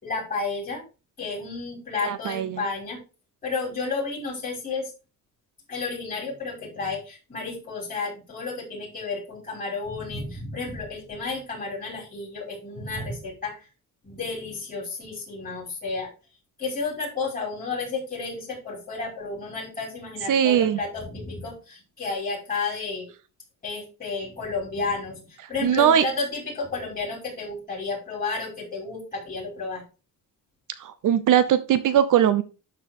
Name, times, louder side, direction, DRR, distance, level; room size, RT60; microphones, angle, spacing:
voice 1, 0.0-0.8 1.2-3.0 3.4-4.9 5.7-13.7 14.0-16.1 16.6-23.1 23.6-29.8, left 4 dB, 25° left, -4 dB, 5.3 m, -32 dB
voice 2, 2.0-2.6 20.3-20.8 25.6-26.0 30.8-32.4, right 9 dB, 60° right, 13 dB, 0.6 m, -20 dB
12.0 x 4.5 x 3.6 m, 0.32 s
cardioid pair, 170°, 35 cm